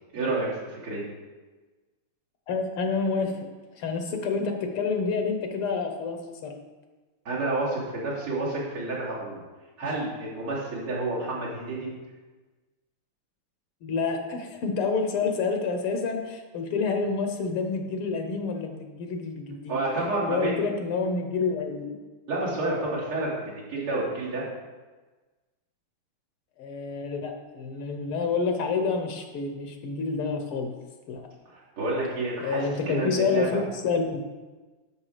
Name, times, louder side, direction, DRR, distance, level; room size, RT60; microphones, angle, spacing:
voice 1, 0.1-1.0 7.3-9.4 9.8-11.9 19.7-20.7 22.3-24.4 31.5-33.6, right 2 dB, 75° right, -7 dB, 4.0 m, -29 dB
voice 2, 2.5-3.5 3.8-6.5 13.8-19.7 20.3-22.0 26.6-30.7 31.1-31.3 32.4-34.2, left 4 dB, 85° left, 5 dB, 2.1 m, -28 dB
10.5 x 6.5 x 5.1 m, 1.3 s
omnidirectional pair, 2.4 m